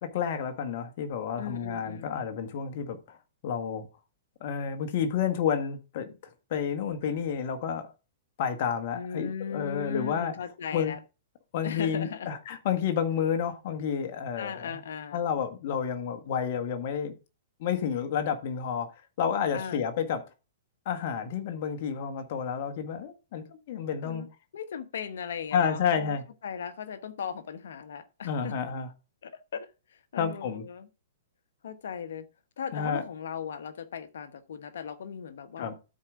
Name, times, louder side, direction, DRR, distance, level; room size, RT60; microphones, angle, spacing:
voice 1, 0.0-3.2 3.4-3.9 4.4-6.2 6.5-7.9 8.4-10.3 10.7-10.9 11.5-14.8 15.1-17.1 17.6-18.9 19.2-20.2 20.8-24.2 25.5-26.2 28.2-28.9 30.2-30.6 32.7-33.0 35.6-35.7, left 7 dB, 50° left, 1.5 m, -30 dB
voice 2, 1.4-2.2 8.9-11.0 11.6-12.3 14.4-15.2 19.5-19.9 24.0-26.2 26.4-28.6 29.2-30.9 31.6-32.3 32.6-35.7, left 7 dB, 75° left, 1.0 m, -38 dB
13.0 x 4.7 x 3.7 m
hypercardioid pair, 140°, 0 cm